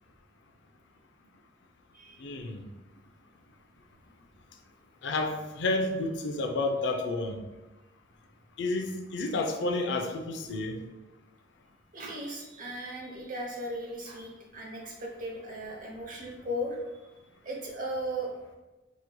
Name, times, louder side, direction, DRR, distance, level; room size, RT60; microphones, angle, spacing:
voice 1, 2.2-2.7 5.0-7.4 8.6-10.8, left 2 dB, 65° left, 4 dB, 0.4 m, -30 dB
voice 2, 11.9-16.8 17.4-18.3, equal, 45° right, -1 dB, 0.8 m, -37 dB
4.8 x 3.0 x 2.2 m, 1.1 s
head